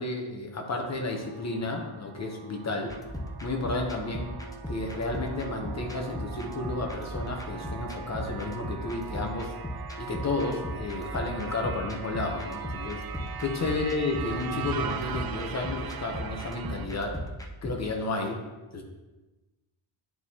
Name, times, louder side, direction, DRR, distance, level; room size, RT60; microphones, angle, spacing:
voice 1, 0.0-2.9 3.4-4.3 4.7-9.5 10.0-13.0 13.4-17.2 17.6-18.4 18.7-18.8, left 3 dB, 35° left, 2 dB, 0.9 m, -32 dB
sound 1, 0.8-16.9, right 7 dB, 50° right, 0.5 m, -40 dB
sound 2, 2.9-17.7, equal, 10° left, 0.5 m, -38 dB
10.5 x 4.7 x 2.8 m, 1.1 s
wide cardioid pair, 155°, 49 cm